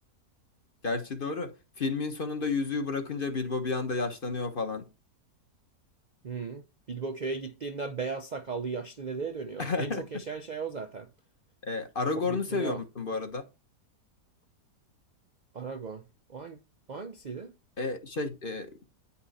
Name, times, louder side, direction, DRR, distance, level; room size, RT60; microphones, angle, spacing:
voice 1, 0.8-4.8 9.6-10.0 11.6-13.4 17.8-18.9, left 3 dB, 35° left, 1.2 m, -31 dB
voice 2, 6.2-11.1 12.3-12.8 15.5-16.0 16.3-16.6 16.9-17.5, right 4 dB, 50° right, 0.5 m, -36 dB
9.8 x 5.8 x 4.2 m
omnidirectional pair, 1.7 m